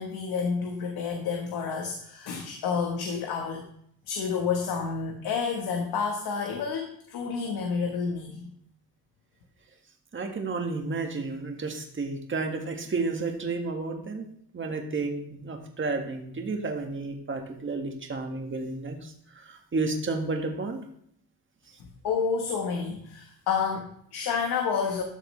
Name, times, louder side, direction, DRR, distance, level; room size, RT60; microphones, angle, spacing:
voice 1, 0.0-3.6 4.1-8.5 22.0-25.0, left 5 dB, 85° left, 2 dB, 1.3 m, -29 dB
voice 2, 10.1-14.2 14.5-20.8, right 3 dB, 35° right, 3 dB, 1.7 m, -31 dB
13.0 x 6.5 x 3.2 m, 0.68 s
cardioid pair, 75°, 36 cm